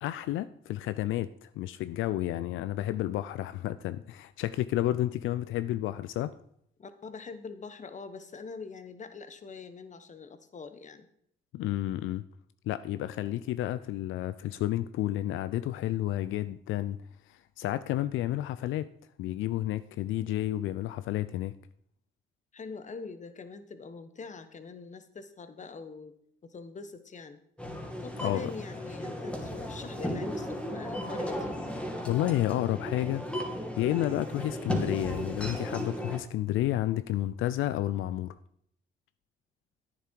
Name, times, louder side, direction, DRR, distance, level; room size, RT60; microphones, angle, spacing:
voice 1, 0.0-6.3 11.5-12.2 12.7-17.0 17.3-18.9 19.2-21.5 28.2-28.5 32.1-33.2 33.8-38.3, left 14 dB, 85° left, 14 dB, 0.5 m, -31 dB
voice 2, 6.8-11.1 22.5-26.1 26.4-27.4 28.0-31.5, left 4 dB, 35° left, 10 dB, 1.2 m, -43 dB
sound 1, 27.6-36.2, equal, 5° left, 2.5 m, -35 dB
11.0 x 9.4 x 4.6 m, 0.69 s
cardioid pair, 90°, 20 cm